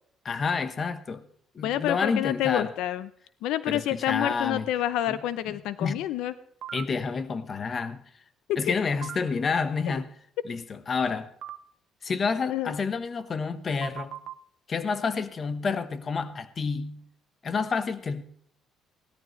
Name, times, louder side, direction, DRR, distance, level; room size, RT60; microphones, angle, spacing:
voice 1, 0.2-1.2 1.5-2.7 3.7-4.7 5.1-5.2 5.5-6.0 6.7-8.0 8.6-10.1 10.4-11.3 12.0-14.2 14.7-17.0 17.4-18.2, left 5 dB, 35° left, 1.1 m, -29 dB
voice 2, 1.6-3.1 3.4-6.3 12.5-12.7, left 12 dB, 85° left, 0.6 m, -28 dB
sound 1, 6.6-6.8 9.0-9.2 11.4-11.6 13.8-14.3, right 10 dB, 55° right, 0.7 m, -37 dB
17.5 x 13.0 x 3.2 m
cardioid pair, 125°, 0 cm